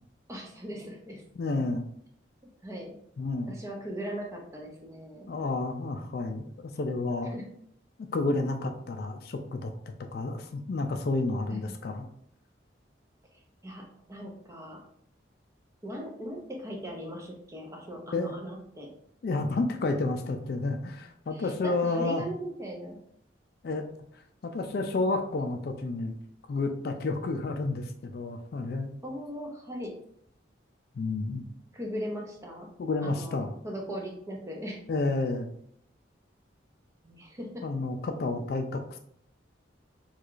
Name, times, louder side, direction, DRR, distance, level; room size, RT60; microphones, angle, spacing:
voice 1, 0.3-1.2 2.6-3.0 3.5-5.3 7.3-7.4 11.5-11.7 13.3-14.8 15.8-18.9 21.3-23.0 29.0-29.9 31.7-32.7 33.0-34.8 37.0-37.6, equal, 15° right, 0 dB, 0.5 m, -39 dB
voice 2, 1.4-1.9 3.2-3.6 5.3-7.3 8.1-12.1 18.1-18.3 19.2-22.2 23.6-23.9 24.4-26.1 26.5-29.0 30.9-31.4 32.8-33.5 34.9-35.5 37.6-39.0, left 3 dB, 55° left, 5 dB, 0.3 m, -30 dB
4.5 x 2.3 x 2.4 m, 0.68 s
head